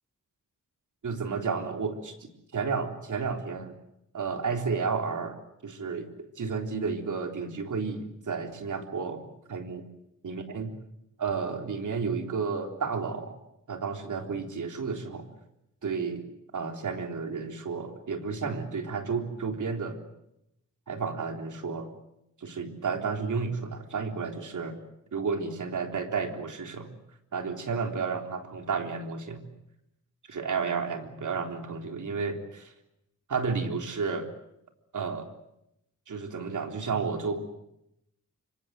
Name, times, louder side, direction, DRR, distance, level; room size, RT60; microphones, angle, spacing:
voice 1, 1.0-3.8 4.1-5.4 5.6-9.9 10.2-10.7 11.2-13.4 13.7-15.3 15.8-16.3 16.5-20.0 20.9-21.9 22.4-24.8 25.1-26.9 27.3-29.4 30.3-32.7 33.3-34.3 34.9-35.3 36.1-37.4, right 5 dB, 75° right, 6 dB, 3.8 m, -32 dB
25.5 x 25.0 x 7.8 m, 0.81 s
wide cardioid pair, 105°, 30 cm